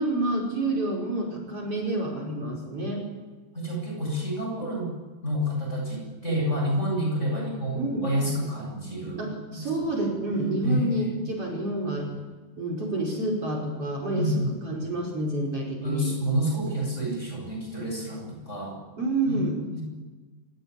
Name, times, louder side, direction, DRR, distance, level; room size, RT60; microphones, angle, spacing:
voice 1, 0.0-3.0 7.7-8.1 9.2-12.1 12.6-16.1 19.0-19.6, right 2 dB, 45° right, 1 dB, 5.8 m, -28 dB
voice 2, 3.5-4.9 5.2-10.1 10.6-11.1 14.1-14.5 15.8-18.8 19.3-19.4 19.7-19.8, equal, 20° left, 0 dB, 8.2 m, -29 dB
26.5 x 22.5 x 9.9 m, 1.3 s
omnidirectional pair, 3.8 m